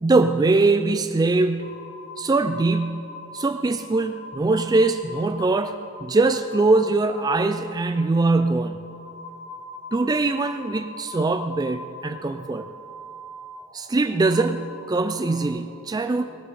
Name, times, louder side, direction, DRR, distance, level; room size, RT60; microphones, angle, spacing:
voice 1, 0.0-1.8 2.2-3.1 3.3-8.8 9.9-12.7 13.7-16.2, right 3 dB, 20° right, 9 dB, 0.3 m, -22 dB
sound 1, 1.6-15.5, left 2 dB, 50° left, 2.8 m, -41 dB
20.5 x 7.5 x 5.2 m, 2.6 s
head